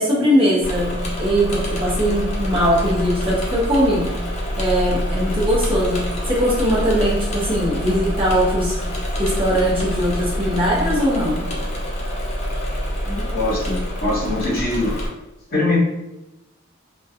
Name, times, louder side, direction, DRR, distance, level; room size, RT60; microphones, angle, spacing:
voice 1, 0.0-4.1 4.6-8.9 9.2-11.5, equal, 25° right, -5 dB, 0.6 m, -20 dB
Engine / Mechanisms, 0.6-15.1, equal, 35° left, 0.5 m, -26 dB
voice 2, 13.0-14.9 15.5-15.8, left 2 dB, 50° left, -6 dB, 1.0 m, -22 dB
2.3 x 2.1 x 2.7 m, 0.94 s
head